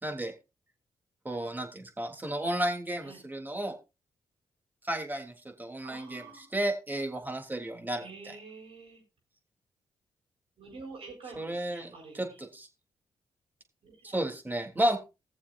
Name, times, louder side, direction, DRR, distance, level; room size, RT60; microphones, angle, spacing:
voice 1, 0.0-0.3 1.2-3.8 4.8-6.2 6.5-8.3 11.4-12.7 14.0-15.0, right 1 dB, 20° right, 4 dB, 3.3 m, -32 dB
voice 2, 5.8-6.4 7.1-7.3 8.0-9.0 10.6-12.4 13.8-14.2, right 4 dB, 70° right, -6 dB, 6.8 m, -48 dB
20.5 x 7.1 x 2.6 m, 0.28 s
supercardioid pair, 45°, 10 cm